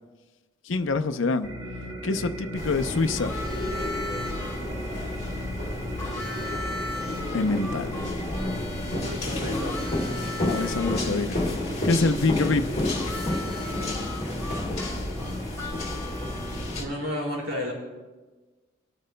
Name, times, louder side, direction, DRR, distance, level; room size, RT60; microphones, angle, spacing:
voice 1, 0.7-1.5 2.0-3.3 7.3-8.2 10.4-11.4 11.8-12.7, left 3 dB, 75° left, 0.6 m, -25 dB
sound 1, 1.4-16.8, equal, 55° right, 1.8 m, -36 dB
sound 2, 2.5-16.8, left 2 dB, 30° left, 1.8 m, -31 dB
Harmonica, 3.2-4.6 6.0-11.0 12.9-16.9, left 2 dB, 15° left, 1.3 m, -38 dB
voice 2, 8.9-9.9 16.8-17.7, left 1 dB, 90° right, 4.2 m, -32 dB
24.0 x 9.0 x 2.2 m
head